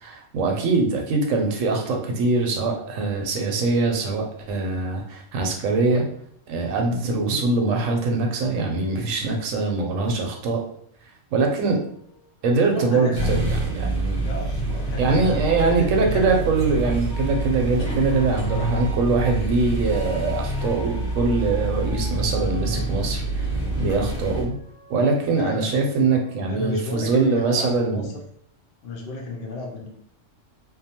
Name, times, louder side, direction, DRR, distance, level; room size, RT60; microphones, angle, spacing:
voice 1, 0.0-6.1 6.5-10.6 11.3-11.8 12.4-14.3 15.0-23.5 23.8-24.5 24.9-28.1, right 3 dB, 70° right, 1 dB, 0.9 m, -23 dB
sound 1, 11.8-12.4 17.1-19.4 19.9-22.9 23.5-26.8, right 1 dB, 10° left, 0.6 m, -45 dB
voice 2, 12.7-13.3 14.1-16.4 18.0-18.1 25.4-25.7 26.5-28.1 28.8-29.9, left 2 dB, 80° left, 0 dB, 0.4 m, -33 dB
sound 2, 13.1-24.4, right 2 dB, 55° left, 1.0 m, -26 dB
2.7 x 2.1 x 2.8 m, 0.66 s
omnidirectional pair, 1.5 m